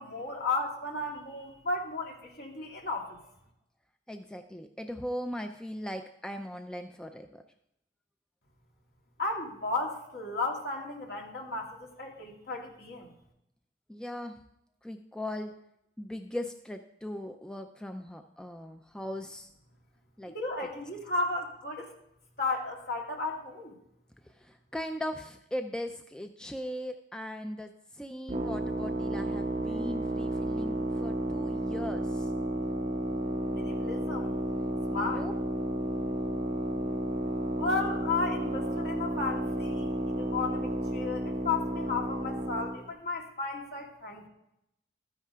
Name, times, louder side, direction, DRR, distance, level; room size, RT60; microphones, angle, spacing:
voice 1, 0.0-3.2 9.2-13.1 20.3-21.9 22.4-23.8 33.5-34.3 34.9-35.3 37.6-44.3, left 3 dB, 55° left, -1 dB, 2.5 m, -34 dB
voice 2, 4.1-7.4 13.9-14.4 14.8-15.6 16.0-19.5 20.2-20.4 24.2-32.3 34.9-35.3, left 1 dB, 5° left, 6 dB, 0.4 m, -39 dB
sound 1, 28.3-42.8, right 1 dB, 40° right, 1.0 m, -32 dB
13.0 x 10.0 x 3.6 m, 0.79 s
head